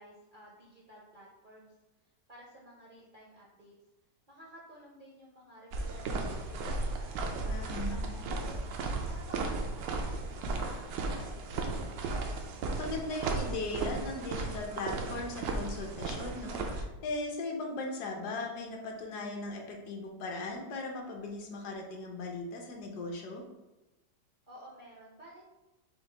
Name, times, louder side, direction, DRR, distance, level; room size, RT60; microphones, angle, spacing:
voice 1, 0.0-1.7 2.3-3.7 4.3-8.2 9.0-12.1 24.5-25.4, right 1 dB, 55° right, -4 dB, 0.5 m, -54 dB
sound 1, 5.7-16.8, right 3 dB, 90° right, 1.3 m, -35 dB
voice 2, 7.5-8.1 12.8-23.4, left 2 dB, 70° left, 1 dB, 1.2 m, -38 dB
5.7 x 2.4 x 3.3 m, 1.0 s
omnidirectional pair, 1.9 m